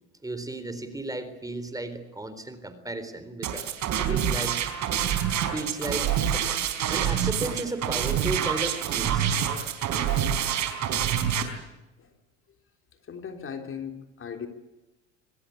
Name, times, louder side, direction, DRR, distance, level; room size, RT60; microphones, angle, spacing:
voice 1, 0.2-3.7 3.9-4.7 5.5-9.4, right 2 dB, 10° right, 11 dB, 3.9 m, -34 dB
sound 1, 3.4-11.4, right 9 dB, 50° right, 4.6 m, -26 dB
voice 2, 13.0-14.5, left 7 dB, 35° left, 6 dB, 3.6 m, -38 dB
24.5 x 20.0 x 8.5 m, 1.0 s
hypercardioid pair, 90°, 37 cm